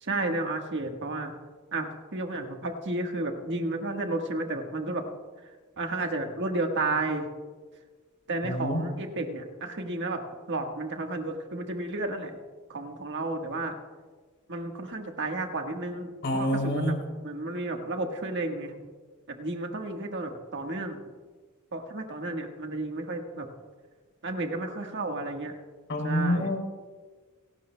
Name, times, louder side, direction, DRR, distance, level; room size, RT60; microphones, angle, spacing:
voice 1, 0.0-1.4 1.7-5.1 5.8-7.3 8.3-12.4 12.7-13.7 14.5-16.9 17.2-18.8 19.3-21.0 21.7-23.5 24.2-25.5 26.0-26.5, right 2 dB, 55° right, 4 dB, 1.4 m, -32 dB
voice 2, 8.4-8.8 16.2-17.0 25.9-26.6, equal, 55° left, 2 dB, 2.9 m, -27 dB
29.0 x 12.0 x 2.2 m, 1.4 s
head